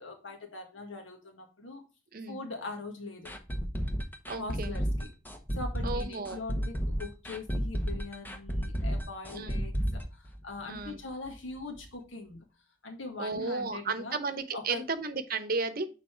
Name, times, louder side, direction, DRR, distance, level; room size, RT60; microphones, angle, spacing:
voice 1, 0.0-1.8 2.3-3.3 4.4-5.1 5.5-12.4 12.8-14.2 14.5-14.8, left 3 dB, 90° left, 3 dB, 1.7 m, -42 dB
sound 1, 3.2-11.0 11.2-11.3 11.7-11.8, equal, 10° left, 0.9 m, -32 dB
voice 2, 4.3-4.8 5.8-6.4 9.3-9.7 10.7-11.0 13.2-15.9, right 4 dB, 50° right, 9 dB, 0.8 m, -34 dB
6.7 x 4.1 x 4.3 m, 0.32 s
head